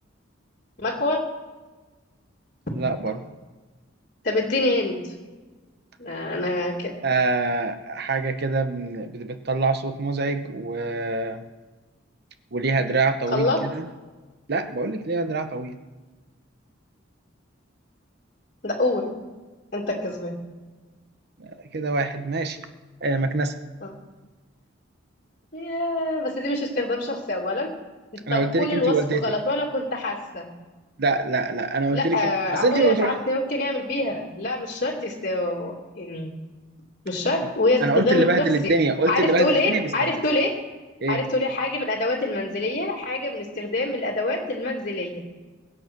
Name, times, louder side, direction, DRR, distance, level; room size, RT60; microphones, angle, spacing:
voice 1, 0.8-1.2 4.2-5.1 6.0-6.9 13.3-13.6 18.6-19.1 19.7-20.3 23.8-23.9 25.5-27.7 28.3-28.9 29.2-30.5 31.9-36.3 37.0-38.4 39.1-40.5 41.1-45.2, left 2 dB, 45° left, -2 dB, 2.5 m, -25 dB
voice 2, 2.7-3.2 7.0-11.4 12.5-13.9 14.5-15.8 21.4-22.6 23.0-23.6 28.3-29.3 31.0-33.2 37.4-37.5 37.8-40.2 41.0-41.2, right 3 dB, 55° right, 9 dB, 0.9 m, -24 dB
23.0 x 8.0 x 6.0 m, 1.3 s
head